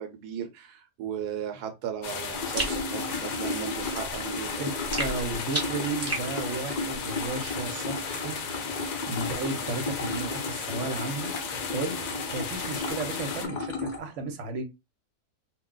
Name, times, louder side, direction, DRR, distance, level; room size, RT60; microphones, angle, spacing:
voice 1, 0.0-4.7, right 8 dB, 85° right, 1.1 m, -36 dB
sound 1, 2.0-13.5, left 5 dB, 65° left, 1.0 m, -35 dB
sound 2, 2.3-14.0, left 3 dB, 50° left, 0.5 m, -35 dB
sound 3, 2.6-2.8 4.9-6.3, right 2 dB, 20° right, 0.4 m, -31 dB
voice 2, 4.6-8.4 9.0-11.3 11.7-12.0 12.3-14.8, right 3 dB, 60° right, 1.0 m, -34 dB
2.6 x 2.2 x 3.7 m
omnidirectional pair, 1.6 m